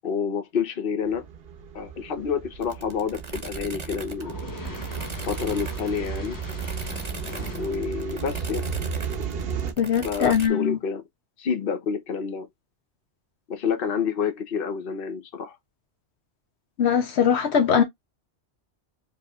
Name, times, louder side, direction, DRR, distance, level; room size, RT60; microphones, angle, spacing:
voice 1, 0.0-1.3 1.7-4.4 5.3-6.4 7.5-8.7 10.0-11.0 11.4-12.5 13.5-15.6, left 6 dB, 55° left, 1.0 m, -28 dB
sound 1, 1.0-9.7, right 6 dB, 60° right, 1.0 m, -35 dB
sound 2, 2.6-10.5, right 4 dB, 30° right, 0.8 m, -38 dB
Fire, 4.2-7.9, equal, 20° left, 0.9 m, -38 dB
voice 2, 9.8-10.8 16.8-17.8, left 7 dB, 75° left, 1.0 m, -21 dB
5.0 x 2.6 x 2.3 m
omnidirectional pair, 1.2 m